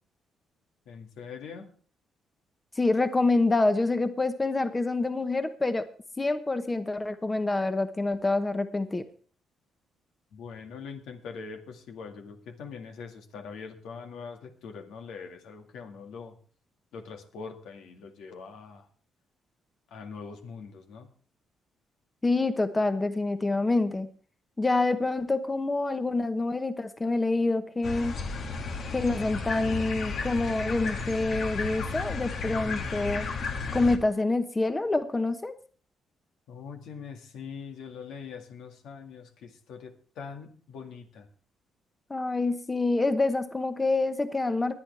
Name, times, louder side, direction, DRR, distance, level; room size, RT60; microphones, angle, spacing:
voice 1, 0.9-1.7 10.3-16.4 16.9-18.9 19.9-21.1 36.5-41.3, left 5 dB, 80° left, 5 dB, 2.0 m, -43 dB
voice 2, 2.8-5.8 6.2-9.0 22.2-24.1 24.6-28.1 28.9-33.3 33.7-35.5 42.1-44.8, left 2 dB, 20° left, 10 dB, 1.0 m, -26 dB
sound 1, 27.8-34.0, left 4 dB, 60° left, 1.8 m, -33 dB
21.5 x 9.0 x 3.4 m, 0.43 s
cardioid pair, 90°, 0 cm